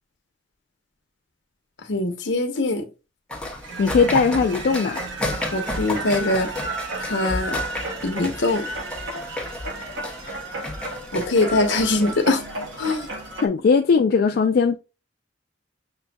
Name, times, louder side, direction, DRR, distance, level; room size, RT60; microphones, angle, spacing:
voice 1, 1.9-2.8 5.5-6.5 7.0-7.6 8.0-8.6 11.1-12.4 12.8-13.1, left 2 dB, 75° left, 0.8 m, -22 dB
sound 1, 3.3-13.3, left 1 dB, 5° left, 0.9 m, -33 dB
sound 2, 3.6-13.5, right 2 dB, 80° right, 1.0 m, -33 dB
voice 2, 3.8-5.0 13.4-14.8, left 5 dB, 55° left, 0.3 m, -19 dB
6.8 x 2.6 x 2.2 m
head